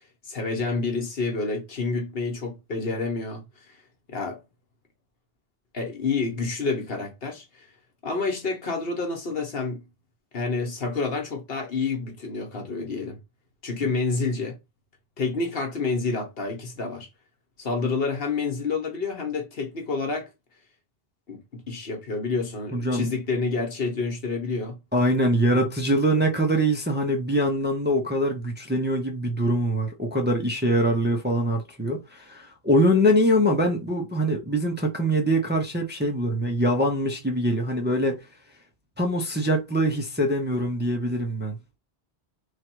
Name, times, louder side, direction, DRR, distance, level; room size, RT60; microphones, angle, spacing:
voice 1, 0.3-3.4 3.7-3.8 4.1-4.4 5.7-7.7 8.0-9.8 10.3-13.2 13.6-14.5 15.2-17.1 17.6-20.3 21.3-24.8, left 4 dB, 65° left, 1.2 m, -28 dB
voice 2, 22.7-23.0 24.9-38.2 39.0-41.6, equal, 10° right, 0.6 m, -23 dB
3.3 x 2.5 x 4.4 m
omnidirectional pair, 1.1 m